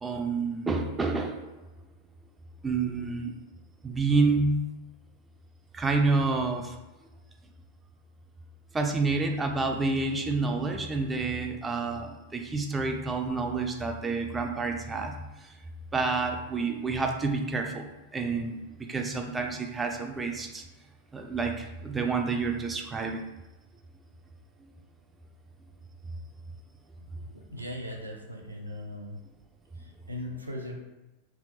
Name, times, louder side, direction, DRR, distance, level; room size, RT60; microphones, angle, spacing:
voice 1, 0.0-1.5 2.6-3.3 3.8-4.6 5.7-6.7 8.7-15.5 15.9-17.9 18.1-18.6 18.9-20.6 21.1-23.2, right 3 dB, 15° right, 3 dB, 0.3 m, -28 dB
voice 2, 27.3-29.2 29.8-30.8, left 1 dB, 85° right, 0 dB, 0.5 m, -39 dB
3.4 x 2.7 x 2.6 m, 1.0 s
figure-of-eight pair, 90°, 0 cm